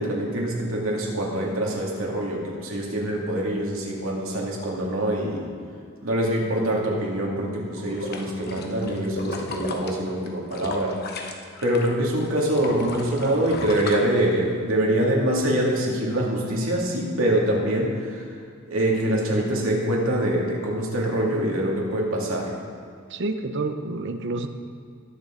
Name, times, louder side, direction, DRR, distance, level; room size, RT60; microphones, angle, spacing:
voice 1, 0.0-5.5 6.0-11.0 11.6-18.3 18.7-22.5, right 1 dB, 75° right, -2 dB, 2.4 m, -24 dB
sound 1, 7.8-11.9 12.2-14.7 15.1-15.2, left 2 dB, 50° left, 1.0 m, -34 dB
voice 2, 23.1-24.5, right 2 dB, 60° right, 8 dB, 0.8 m, -28 dB
20.0 x 6.9 x 3.8 m, 2.3 s
head